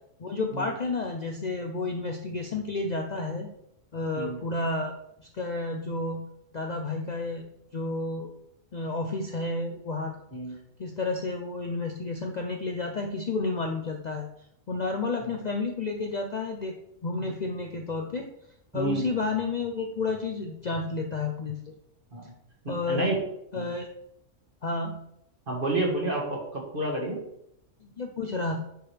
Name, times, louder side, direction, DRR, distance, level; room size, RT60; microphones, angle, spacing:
voice 1, 0.2-3.5 3.9-4.9 5.2-6.2 6.5-8.3 8.7-10.2 10.8-14.3 14.7-16.7 17.0-18.3 18.7-21.6 22.7-23.1 23.5-23.9 24.6-25.0 27.8-28.6, left 3 dB, 45° left, 2 dB, 0.6 m, -31 dB
voice 2, 18.7-19.1 22.1-22.3 22.6-23.2 23.5-23.7 25.5-27.2, right 2 dB, 45° right, -1 dB, 1.7 m, -30 dB
10.0 x 4.8 x 3.3 m, 0.77 s
omnidirectional pair, 1.3 m